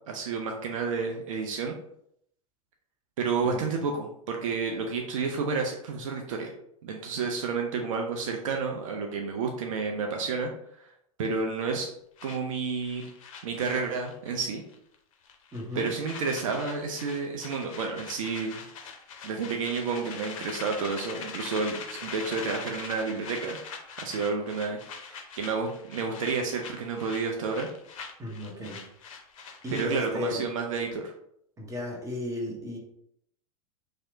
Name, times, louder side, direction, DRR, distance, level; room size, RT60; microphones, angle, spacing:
voice 1, 0.1-1.7 3.2-6.5 6.8-10.5 11.2-11.9 12.2-13.1 13.4-14.6 15.8-18.6 19.2-23.6 24.0-27.7 29.7-31.1, right 4 dB, 65° right, 1 dB, 0.4 m, -30 dB
sound 1, 12.2-14.4 14.7-15.0 15.3-30.2, left 5 dB, 60° left, 0.5 m, -43 dB
voice 2, 15.5-15.9 28.2-28.8 29.6-30.4 31.6-32.8, left 2 dB, 15° right, 0 dB, 0.7 m, -34 dB
2.8 x 2.0 x 2.6 m, 0.72 s
figure-of-eight pair, 90°, 19 cm